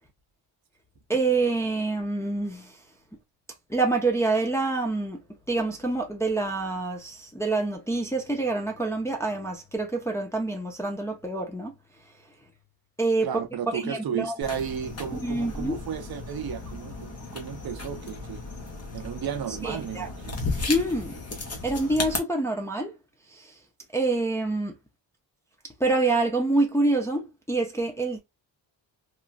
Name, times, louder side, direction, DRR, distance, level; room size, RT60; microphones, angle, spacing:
voice 1, 1.1-2.8 3.7-5.2 5.5-11.7 13.0-13.3 13.7-14.3 15.0-15.8 19.6-20.1 20.7-21.2 21.6-22.9 23.3-23.6 23.9-24.8 25.8-28.2, right 2 dB, 5° left, 0.4 m, -26 dB
voice 2, 13.2-18.4 18.9-20.4, right 8 dB, 55° right, 0.5 m, -34 dB
sound 1, 14.4-22.2, left 3 dB, 35° left, 0.9 m, -35 dB
3.0 x 2.3 x 2.4 m
wide cardioid pair, 165°, 46 cm